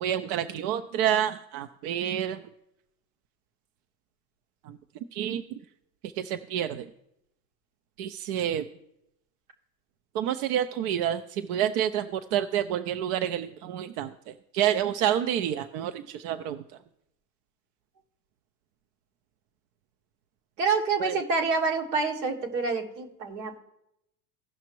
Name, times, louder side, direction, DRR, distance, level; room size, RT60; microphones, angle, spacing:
voice 1, 0.0-2.4 4.7-4.8 5.1-5.4 6.2-6.9 8.0-8.6 10.1-14.1 14.5-16.6 21.0-21.2, right 10 dB, 60° right, 10 dB, 0.6 m, -28 dB
voice 2, 20.6-23.6, right 4 dB, 80° right, 2 dB, 1.7 m, -27 dB
16.5 x 5.8 x 3.0 m, 0.82 s
hypercardioid pair, 95°, 48 cm